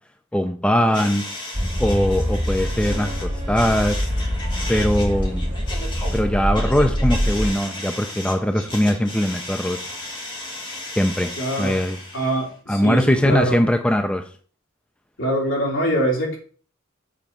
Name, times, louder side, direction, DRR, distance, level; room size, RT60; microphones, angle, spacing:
voice 1, 0.3-1.2 1.8-4.0 4.7-5.5 6.1-9.8 11.0-11.3 11.6-12.0 12.7-14.2, equal, 5° left, 6 dB, 0.4 m, -21 dB
sound 1, 0.9-12.5, left 1 dB, 25° left, 1.6 m, -35 dB
sound 2, 1.5-7.5, equal, 35° right, 2.6 m, -24 dB
voice 2, 11.4-11.8 12.1-13.6 15.2-16.4, right 1 dB, 65° left, -2 dB, 2.9 m, -23 dB
7.3 x 3.9 x 5.8 m, 0.44 s
head